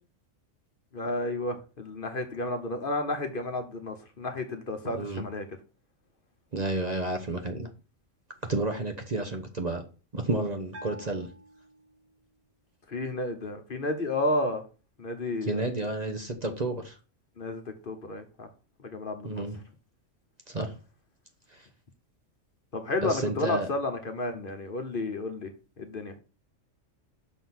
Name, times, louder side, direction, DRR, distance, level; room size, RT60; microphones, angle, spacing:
voice 1, 0.9-5.5 12.9-14.6 15.0-15.6 17.4-18.5 18.8-19.4 22.7-25.5 25.8-26.1, left 2 dB, 45° left, 6 dB, 1.1 m, -32 dB
voice 2, 4.9-5.2 6.5-7.7 8.4-9.8 10.1-11.3 15.4-17.0 19.2-19.6 20.5-20.7 21.5-21.7 23.0-23.7, right 2 dB, 35° right, 5 dB, 0.9 m, -31 dB
Bell, 10.7-12.4, right 1 dB, 55° right, 1.4 m, -48 dB
6.4 x 3.9 x 6.0 m, 0.34 s
omnidirectional pair, 1.3 m